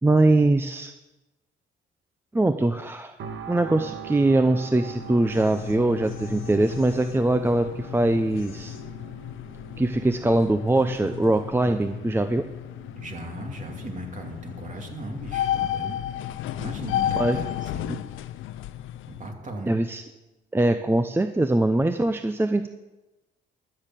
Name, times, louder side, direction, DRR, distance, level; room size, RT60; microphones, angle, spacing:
voice 1, 0.0-0.9 2.3-3.1 3.5-8.8 9.8-12.4 17.2-17.4 17.9-18.0 19.7-20.0 20.5-22.7, right 2 dB, 10° right, 9 dB, 0.6 m, -22 dB
sound 1, 3.2-18.2 18.7-18.9, right 7 dB, 75° right, 1.6 m, -44 dB
sound 2, 4.8-19.3, left 11 dB, 85° left, 0.6 m, -33 dB
voice 2, 13.0-16.0 16.6-18.0 19.1-19.8, right 1 dB, 40° right, 2 dB, 2.7 m, -37 dB
13.5 x 6.8 x 7.6 m, 1.1 s
cardioid pair, 90°, 20 cm